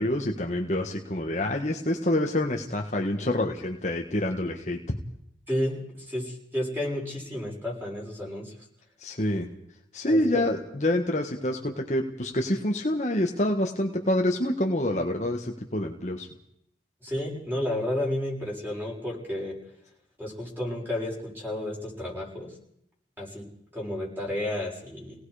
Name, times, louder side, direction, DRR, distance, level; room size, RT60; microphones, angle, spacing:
voice 1, 0.0-5.0 9.0-9.5 9.9-16.3, left 1 dB, 40° left, 2 dB, 1.6 m, -27 dB
voice 2, 5.5-8.5 10.1-10.5 17.0-19.5 20.2-22.5 23.2-23.4 23.7-25.1, left 1 dB, 10° right, -4 dB, 6.8 m, -31 dB
29.0 x 18.5 x 5.1 m, 0.73 s
head